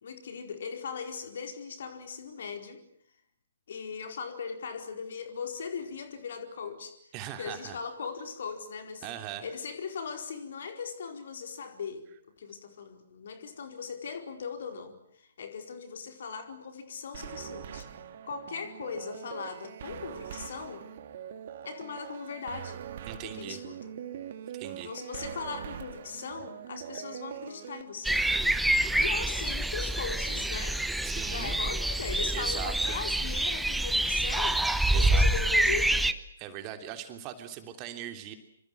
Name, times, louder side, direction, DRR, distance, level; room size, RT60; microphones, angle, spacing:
voice 1, 0.0-2.8 3.7-6.9 7.4-9.1 9.4-12.1 12.4-17.9 18.2-20.9 21.6-22.8 23.2-23.9 24.8-28.2 29.0-30.8 31.3-34.6 34.9-36.1, left 6 dB, 50° left, 7 dB, 4.6 m, -39 dB
voice 2, 7.1-7.8 9.0-9.5 23.1-23.6 24.5-24.9 31.0-31.6 32.3-33.0 34.9-35.2 36.4-38.3, right 11 dB, 25° right, 7 dB, 3.1 m, -40 dB
sound 1, 17.1-27.8, right 9 dB, 45° right, 2.5 m, -42 dB
sound 2, 28.0-36.1, right 1 dB, ahead, 1.1 m, -27 dB
26.5 x 26.5 x 7.9 m, 0.68 s
figure-of-eight pair, 125°, 0 cm